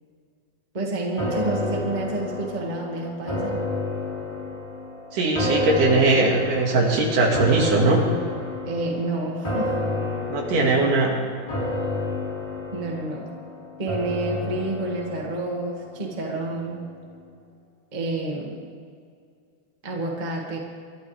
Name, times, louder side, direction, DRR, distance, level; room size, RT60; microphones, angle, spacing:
voice 1, 0.7-3.6 8.6-9.7 12.7-13.3 13.8-16.8 17.9-18.6 19.8-20.6, right 2 dB, 20° right, -2 dB, 1.1 m, -29 dB
sound 1, 1.2-16.5 16.8-16.9, left 2 dB, 10° left, 2.5 m, -30 dB
voice 2, 5.1-8.0 10.3-11.1, right 3 dB, 60° right, -1 dB, 3.4 m, -20 dB
26.0 x 12.0 x 3.5 m, 2.2 s
omnidirectional pair, 4.6 m